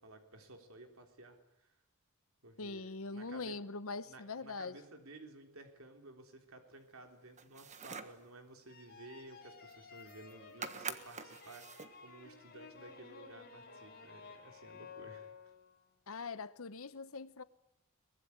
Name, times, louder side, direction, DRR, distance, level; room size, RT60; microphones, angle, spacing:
voice 1, 0.0-1.8 2.4-3.6 4.1-15.5, right 2 dB, 65° right, 3.7 m, -55 dB
voice 2, 2.6-4.8 16.1-17.4, left 4 dB, 70° left, 0.9 m, -42 dB
sound 1, 7.4-8.2 9.7-9.8 10.0-10.3 10.6-12.0, right 5 dB, 35° right, 1.5 m, -45 dB
sound 2, 8.7-15.8, left 5 dB, 45° left, 4.5 m, -54 dB
23.5 x 21.0 x 9.7 m
head